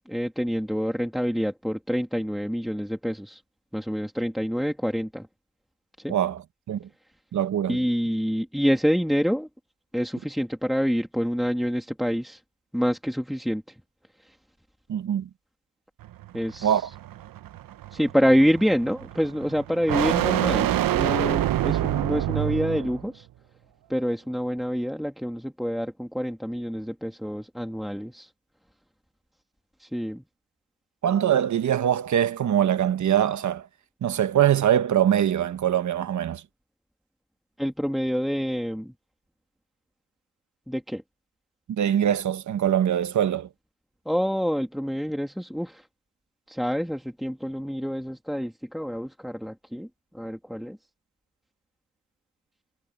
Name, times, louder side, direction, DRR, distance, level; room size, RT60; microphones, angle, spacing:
voice 1, 0.0-3.4 3.7-5.3 6.0-6.2 7.7-9.5 9.9-12.4 12.7-13.8 14.2-14.4 16.3-16.9 17.9-23.3 23.9-28.3 29.8-30.2 37.6-39.0 40.7-41.0 44.1-45.9 46.5-50.8, equal, ahead, 1.9 m, -27 dB
voice 2, 7.3-7.8 14.9-15.3 16.6-16.8 31.0-33.7 34.0-36.4 41.7-43.5, right 10 dB, 55° right, 1.2 m, -23 dB
sound 1, 16.0-23.1, right 12 dB, 80° right, 0.9 m, -27 dB
wide cardioid pair, 150°, 34 cm